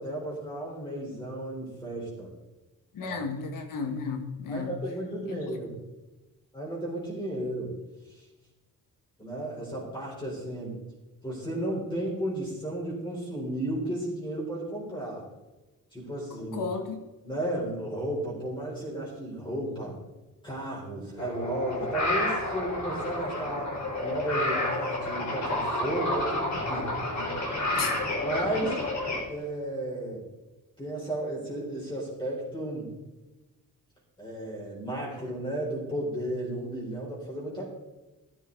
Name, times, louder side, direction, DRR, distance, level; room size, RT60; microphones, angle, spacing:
voice 1, 0.0-2.3 3.0-3.2 4.5-5.8 6.5-7.7 8.1-8.2 9.2-10.8 11.2-15.3 15.9-16.6 17.2-20.0 20.4-23.7 24.0-27.4 28.2-28.8 29.1-30.2 30.8-32.9 34.2-37.6, right 1 dB, 15° left, -5 dB, 4.1 m, -33 dB
voice 2, 2.9-4.7 5.3-5.6 16.4-17.0 27.7-28.0, left 4 dB, 75° left, 5 dB, 1.7 m, -33 dB
sound 1, 21.2-29.2, left 2 dB, 55° left, 4.3 m, -30 dB
14.0 x 10.5 x 4.0 m, 1.1 s
wide cardioid pair, 170°, 33 cm